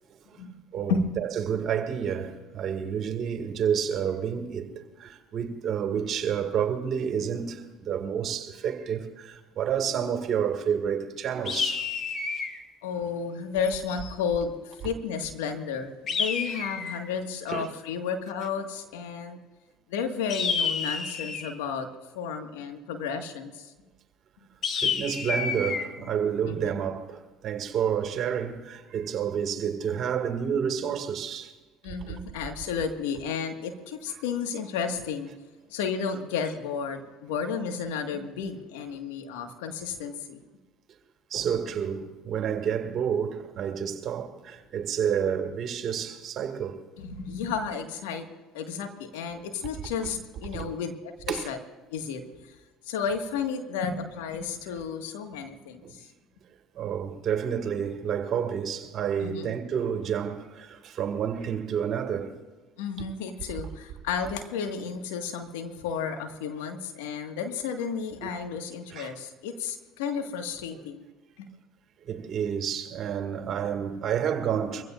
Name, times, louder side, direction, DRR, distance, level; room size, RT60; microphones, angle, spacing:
voice 1, 0.7-11.9 17.5-17.7 24.8-31.5 32.0-32.1 41.3-46.8 50.5-50.7 51.3-51.5 55.8-56.0 56.7-62.3 68.2-68.3 68.9-69.1 70.7-70.8 72.0-74.8, right 8 dB, 50° right, 2.1 m, -29 dB
sound 1, 11.5-12.6 16.1-17.1 20.3-21.6 24.6-25.9, left 5 dB, 45° left, 1.9 m, -29 dB
voice 2, 12.8-19.4 19.9-21.9 22.1-23.7 26.0-26.1 26.5-26.8 31.8-35.3 35.7-40.4 47.0-48.3 48.5-51.6 51.9-52.6 52.8-56.1 59.2-59.5 62.8-71.1 71.4-71.5, left 6 dB, 80° left, 1.8 m, -32 dB
23.5 x 16.0 x 2.6 m
hypercardioid pair, 70°, 0 cm